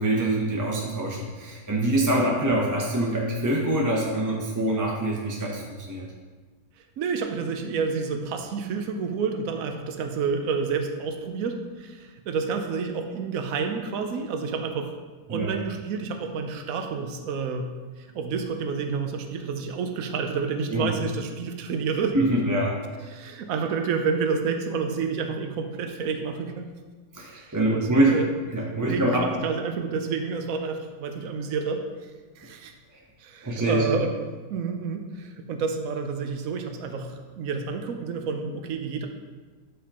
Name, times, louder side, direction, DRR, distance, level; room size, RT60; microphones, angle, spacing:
voice 1, 0.0-6.1 15.3-15.5 20.7-20.9 22.1-22.8 27.1-28.2 28.5-29.3 33.4-33.9, right 1 dB, 15° right, -3 dB, 0.8 m, -24 dB
voice 2, 7.0-14.9 15.3-17.7 18.0-22.3 23.1-26.7 27.3-28.3 28.9-32.1 32.4-32.7 33.2-34.1 34.5-39.1, right 5 dB, 75° right, 5 dB, 1.2 m, -29 dB
12.5 x 5.3 x 3.0 m, 1.4 s
omnidirectional pair, 1.5 m